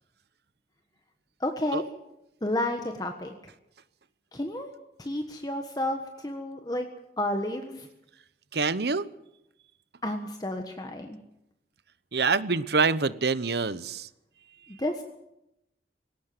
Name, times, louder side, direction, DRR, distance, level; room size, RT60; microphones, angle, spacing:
voice 1, 1.4-1.8 2.4-3.3 4.3-4.7 5.0-6.9 7.2-7.9 10.0-11.2 14.8-15.0, left 1 dB, 20° left, 5 dB, 1.4 m, -31 dB
voice 2, 8.5-9.1 12.1-14.1, right 4 dB, 65° right, 16 dB, 0.9 m, -26 dB
19.5 x 18.0 x 7.8 m, 0.84 s
head